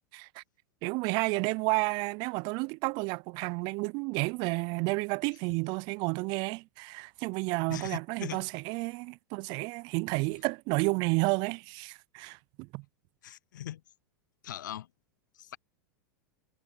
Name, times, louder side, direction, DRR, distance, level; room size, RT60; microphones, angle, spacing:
voice 1, 0.1-0.4 0.8-12.8, right 28 dB, 45° right, 0.5 m, -31 dB
voice 2, 7.7-8.5 13.2-13.8 14.4-14.9 15.3-15.6, left 12 dB, 75° left, 0.6 m, -40 dB
hypercardioid pair, 95°, 10 cm